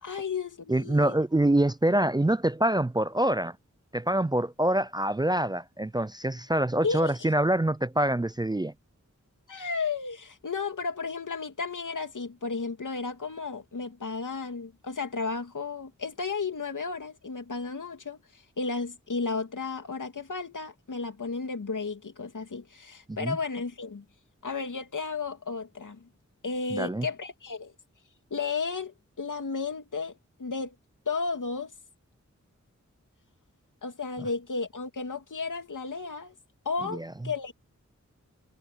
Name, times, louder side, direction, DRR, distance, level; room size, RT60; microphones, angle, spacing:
voice 1, 0.0-1.1 6.8-7.3 9.5-24.0 24.4-26.1 26.4-27.7 28.3-30.7 31.1-31.7 33.8-36.3 36.6-37.5, left 4 dB, 85° left, 2.8 m, -33 dB
voice 2, 0.7-3.6 3.9-8.7 23.1-23.4 26.7-27.1 36.9-37.1, right 1 dB, 15° right, 0.5 m, -25 dB
cardioid pair, 45°, 30 cm